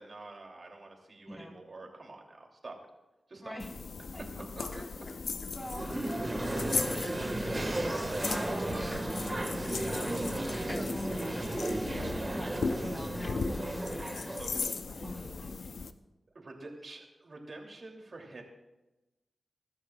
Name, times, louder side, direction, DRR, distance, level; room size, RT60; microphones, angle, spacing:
voice 1, 0.0-2.8 3.3-3.6 4.7-4.8 14.3-14.6 16.3-18.4, right 2 dB, 55° right, 1 dB, 2.9 m, -47 dB
voice 2, 1.2-1.6 3.4-3.7 4.1-4.7 5.5-11.7 12.8-14.4 15.0-15.6, equal, 5° left, -1 dB, 4.7 m, -43 dB
sound 1, 3.6-15.9, left 4 dB, 85° left, 0.6 m, -38 dB
sound 2, 4.7-5.6 6.8-7.6 8.9-9.8 10.0-10.2 10.5-12.3 13.2-13.5 13.9-14.1, left 2 dB, 30° left, 1.1 m, -46 dB
sound 3, 5.6-15.6, right 1 dB, 30° right, 1.7 m, -35 dB
23.0 x 12.5 x 2.4 m, 1.0 s
wide cardioid pair, 70°, 0 cm